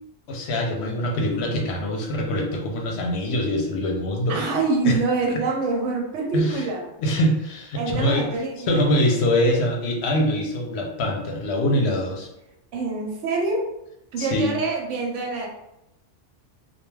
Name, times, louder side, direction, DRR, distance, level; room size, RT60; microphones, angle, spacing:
voice 1, 0.3-4.4 4.9-5.0 6.3-6.7 7.0-12.3 14.2-14.5, equal, 70° left, 1 dB, 0.8 m, -24 dB
voice 2, 4.3-6.8 7.8-8.9 12.7-13.7 14.1-15.5, right 3 dB, 85° right, 1 dB, 1.0 m, -25 dB
2.2 x 2.2 x 3.1 m, 0.86 s
omnidirectional pair, 1.2 m